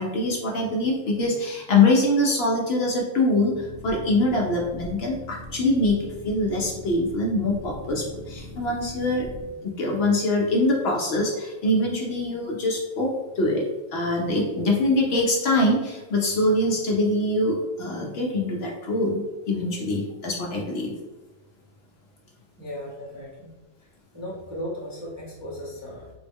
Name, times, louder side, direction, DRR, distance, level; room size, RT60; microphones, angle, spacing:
voice 1, 0.0-9.3 9.6-13.1 13.4-13.6 13.9-20.9, left 2 dB, 60° left, -1 dB, 0.7 m, -24 dB
Boat Water vehicle, 3.5-9.5, equal, 25° left, 0.8 m, -41 dB
voice 2, 22.6-26.1, equal, 20° right, -7 dB, 0.5 m, -37 dB
3.6 x 2.0 x 3.4 m, 1.1 s
omnidirectional pair, 1.3 m